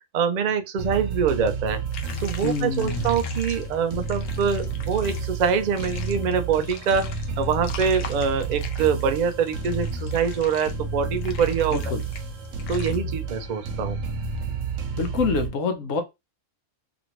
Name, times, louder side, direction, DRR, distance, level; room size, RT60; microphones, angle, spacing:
voice 1, 0.1-1.8 2.2-11.8 12.7-14.0, right 6 dB, 65° right, 0.4 m, -24 dB
sound 1, 0.8-15.5, right 4 dB, 90° right, 1.0 m, -31 dB
sound 2, 1.9-13.0, left 6 dB, 60° left, 0.7 m, -43 dB
voice 2, 2.4-3.1 11.7-12.0 15.0-16.0, left 4 dB, 85° left, 1.0 m, -26 dB
2.9 x 2.6 x 2.9 m
omnidirectional pair, 1.3 m